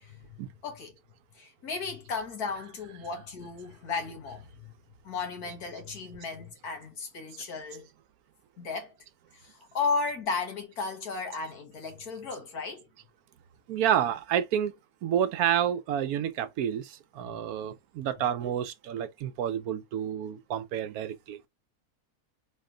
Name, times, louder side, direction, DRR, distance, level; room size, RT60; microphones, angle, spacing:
voice 1, 0.0-0.9 1.4-4.7 5.0-7.9 8.6-8.9 9.3-12.9 17.3-17.4, left 4 dB, 80° left, 2.0 m, -35 dB
voice 2, 13.7-14.7 15.0-16.8 17.2-21.4, right 9 dB, 80° right, 1.1 m, -29 dB
4.2 x 3.1 x 3.7 m
omnidirectional pair, 1.6 m